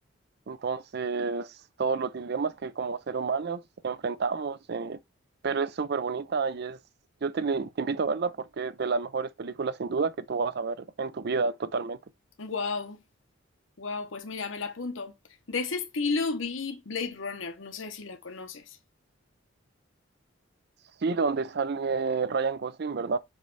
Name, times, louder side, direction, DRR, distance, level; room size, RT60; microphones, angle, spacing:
voice 1, 0.5-5.0 5.4-6.8 7.2-12.0 21.0-23.2, right 4 dB, 50° right, 0.4 m, -30 dB
voice 2, 12.4-13.0 13.8-15.1 15.5-18.8, left 4 dB, 70° left, 1.0 m, -33 dB
7.2 x 3.3 x 4.0 m
head